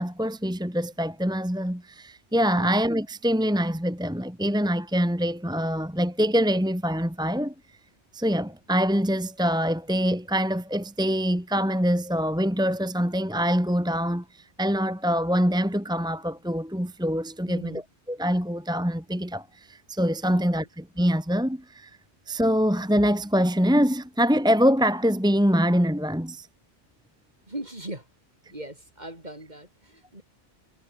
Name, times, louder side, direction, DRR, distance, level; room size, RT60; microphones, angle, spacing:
voice 1, 0.0-7.5 8.1-21.9 22.3-26.5, equal, 5° right, 1.9 m, -24 dB
voice 2, 17.5-17.8 20.3-20.7 27.5-28.1 28.5-30.2, right 1 dB, 40° right, 6.0 m, -40 dB
omnidirectional pair, 1.2 m